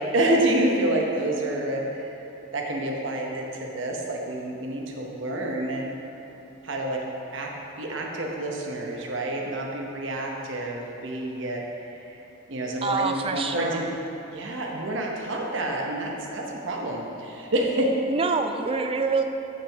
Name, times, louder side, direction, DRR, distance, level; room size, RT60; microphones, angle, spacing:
voice 1, 0.1-2.1 2.5-5.8 6.6-7.0 7.3-7.5 7.8-11.6 11.9-12.1 12.5-13.9 14.3-17.9, right 1 dB, 70° right, 0 dB, 0.9 m, -28 dB
voice 2, 12.8-14.0 18.1-19.2, right 4 dB, 25° right, 6 dB, 0.3 m, -26 dB
7.4 x 7.4 x 3.4 m, 3.0 s
head